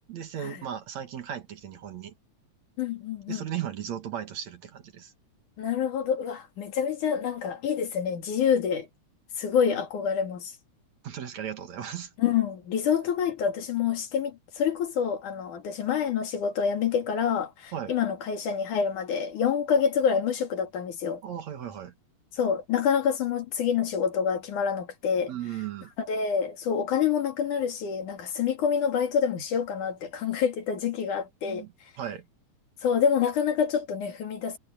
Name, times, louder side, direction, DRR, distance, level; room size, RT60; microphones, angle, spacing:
voice 1, 0.1-2.1 3.3-5.1 11.0-12.1 17.7-17.9 21.2-21.9 25.3-25.9 31.4-31.7 32.0-32.3, right 9 dB, 60° right, 2.9 m, -36 dB
voice 2, 2.8-3.5 5.6-8.9 9.4-10.5 12.2-21.2 22.3-25.3 26.0-31.7 32.8-34.6, left 7 dB, 70° left, 3.8 m, -27 dB
omnidirectional pair, 3.7 m